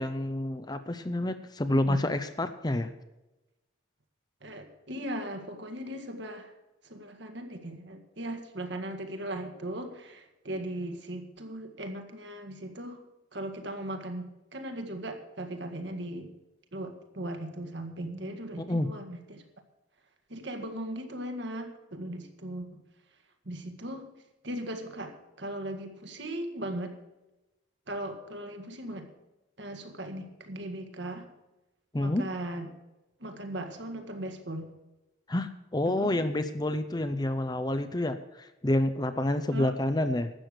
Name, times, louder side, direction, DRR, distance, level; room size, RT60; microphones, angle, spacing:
voice 1, 0.0-2.9 18.6-18.9 31.9-32.2 35.3-40.3, left 1 dB, 20° left, 10 dB, 0.6 m, -28 dB
voice 2, 1.6-2.0 4.4-6.5 6.8-13.0 13.3-16.3 16.7-19.4 20.3-22.8 23.5-24.1 24.4-26.9 27.9-29.1 29.6-31.3 32.0-32.7 33.2-34.7 35.8-36.2 39.5-39.7, right 1 dB, 60° right, 6 dB, 1.7 m, -38 dB
12.5 x 8.4 x 6.4 m, 1.0 s
head